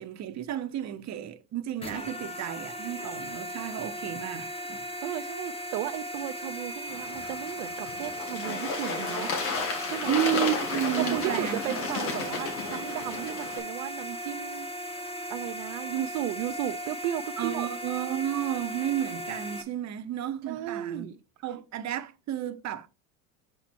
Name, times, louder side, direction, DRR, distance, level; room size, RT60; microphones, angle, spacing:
voice 1, 0.0-5.2 10.1-11.8 17.4-21.1 21.4-22.9, right 11 dB, 40° right, 0.8 m, -32 dB
sound 1, 1.8-19.6, equal, 15° left, 1.2 m, -37 dB
voice 2, 5.0-9.3 9.8-10.2 11.0-14.7 15.0-17.7 20.5-21.2, right 12 dB, 70° right, 0.6 m, -35 dB
Bird / Water, 6.9-13.6, left 4 dB, 85° left, 2.2 m, -33 dB
6.5 x 4.5 x 4.3 m
supercardioid pair, 95°, 41 cm